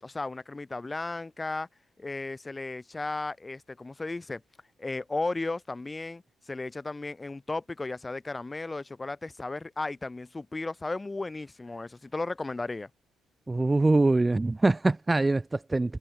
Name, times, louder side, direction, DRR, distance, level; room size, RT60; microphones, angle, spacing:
voice 1, 0.0-1.7 2.0-4.4 4.8-12.9, left 3 dB, 20° left, 1.6 m, -35 dB
voice 2, 13.5-16.0, right 2 dB, 20° right, 0.4 m, -24 dB
cardioid pair, 90°, 0 cm